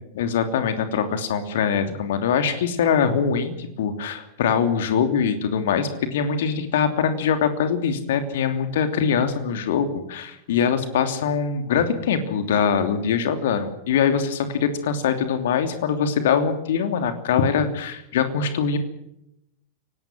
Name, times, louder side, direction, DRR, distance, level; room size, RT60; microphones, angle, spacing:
voice 1, 0.1-18.8, left 7 dB, 55° left, 9 dB, 3.0 m, -23 dB
29.5 x 18.5 x 6.2 m, 0.81 s
figure-of-eight pair, 90°, 0 cm